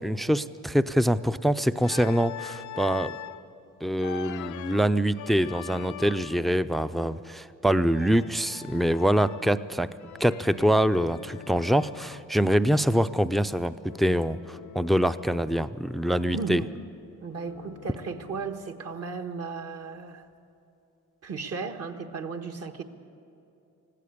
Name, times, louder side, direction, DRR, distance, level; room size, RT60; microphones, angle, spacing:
voice 1, 0.0-3.2 3.8-9.9 10.2-16.6, equal, ahead, 13 dB, 0.4 m, -25 dB
Organ, 1.8-3.4 4.0-6.6 7.9-9.6 10.0-12.3 13.9-15.7 16.0-18.7, left 12 dB, 75° left, 0.6 m, -43 dB
voice 2, 16.3-16.7 17.2-20.3 21.2-22.8, right 4 dB, 55° right, 7 dB, 1.4 m, -35 dB
20.0 x 16.0 x 8.4 m, 2.7 s
cardioid pair, 90°, 30 cm